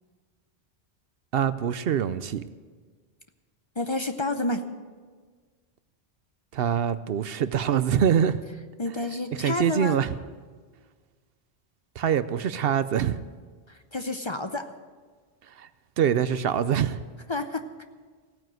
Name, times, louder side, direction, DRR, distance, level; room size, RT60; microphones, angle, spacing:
voice 1, 1.3-2.4 6.5-8.4 9.4-10.1 12.0-13.2 15.6-15.7 16.0-17.0, right 8 dB, 70° right, 0.8 m, -24 dB
voice 2, 3.8-4.6 8.8-10.0 13.7-14.7 17.3-17.6, left 2 dB, 30° left, 0.7 m, -29 dB
16.0 x 9.3 x 7.7 m
omnidirectional pair, 1.1 m